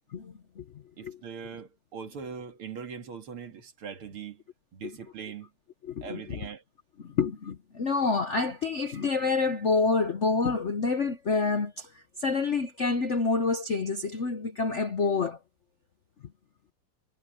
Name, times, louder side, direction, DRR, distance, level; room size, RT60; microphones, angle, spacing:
voice 1, 0.1-0.7 1.0-1.2 4.8-5.0 5.8-6.4 7.0-15.4, left 4 dB, 55° left, 0.8 m, -28 dB
voice 2, 1.0-4.4 4.7-5.5 6.0-6.6, right 7 dB, 75° right, 2.9 m, -41 dB
omnidirectional pair, 2.4 m